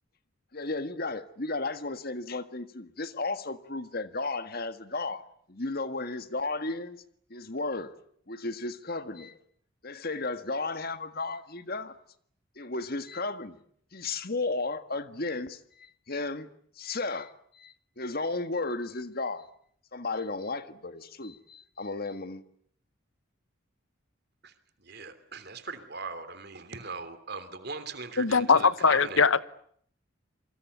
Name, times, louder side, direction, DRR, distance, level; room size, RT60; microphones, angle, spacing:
voice 1, 0.5-7.0 7.3-8.0 8.3-9.4 9.8-12.0 12.5-13.6 13.9-16.5 16.8-19.5 19.9-22.4, left 3 dB, 50° left, 1.7 m, -34 dB
voice 2, 24.8-29.2, right 4 dB, 50° right, 3.2 m, -40 dB
voice 3, 28.2-29.4, left 5 dB, 70° left, 1.1 m, -21 dB
27.0 x 25.0 x 8.3 m
head